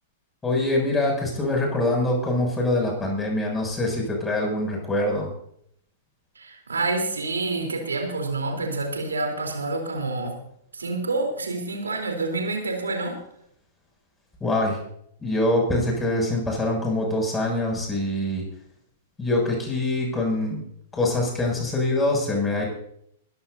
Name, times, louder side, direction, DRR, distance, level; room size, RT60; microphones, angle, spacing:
voice 1, 0.4-5.3 14.4-14.8 15.2-18.4 19.2-20.6 20.9-22.6, left 1 dB, 15° left, 0 dB, 7.1 m, -24 dB
voice 2, 6.4-10.4 10.7-13.2, right 3 dB, 75° right, 3 dB, 3.7 m, -28 dB
21.5 x 15.5 x 2.8 m, 0.70 s
figure-of-eight pair, 100°, 0 cm